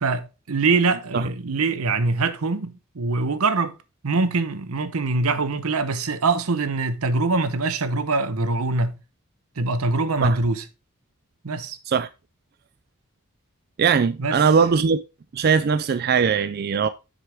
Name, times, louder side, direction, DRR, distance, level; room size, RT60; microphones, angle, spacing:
voice 1, 0.0-3.8 4.0-9.0 9.6-10.6 11.4-11.8 14.2-14.4, right 3 dB, 85° right, 0.8 m, -23 dB
voice 2, 13.8-15.0 15.3-16.9, right 6 dB, 45° right, 0.3 m, -20 dB
7.5 x 6.6 x 3.4 m
head